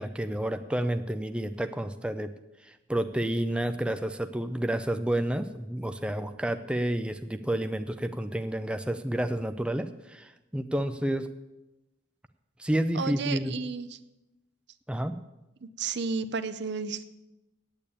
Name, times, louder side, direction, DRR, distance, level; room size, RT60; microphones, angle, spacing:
voice 1, 0.0-2.3 2.6-11.3 12.6-13.6 14.9-15.2, right 1 dB, 5° right, 8 dB, 0.4 m, -30 dB
voice 2, 12.9-13.9 15.6-17.0, right 5 dB, 60° right, 12 dB, 0.7 m, -32 dB
8.9 x 8.6 x 8.4 m, 0.98 s
head